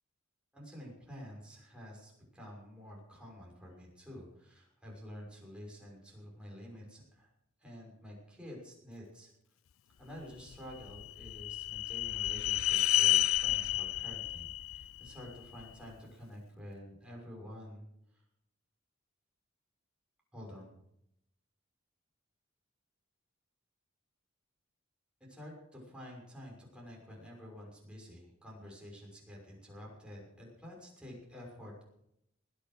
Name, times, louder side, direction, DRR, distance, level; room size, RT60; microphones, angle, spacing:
voice 1, 0.5-7.3 7.6-9.3 10.0-17.9 20.3-20.7 25.3-31.8, equal, 5° right, -3 dB, 6.1 m, -49 dB
sound 1, 10.5-15.7, left 16 dB, 80° left, 0.5 m, -31 dB
21.0 x 8.7 x 6.5 m, 0.79 s
head